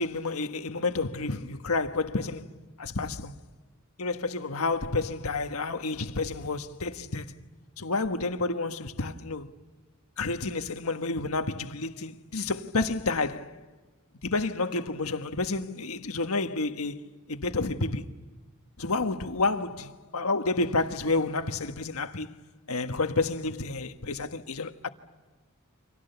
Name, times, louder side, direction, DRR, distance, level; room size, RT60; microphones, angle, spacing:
voice 1, 0.0-2.5 2.8-3.3 4.0-7.3 7.8-9.5 10.2-13.5 14.2-17.0 17.3-18.1 18.8-22.3 22.7-24.9, left 3 dB, 90° left, 1.4 m, -30 dB
29.5 x 26.5 x 6.9 m
head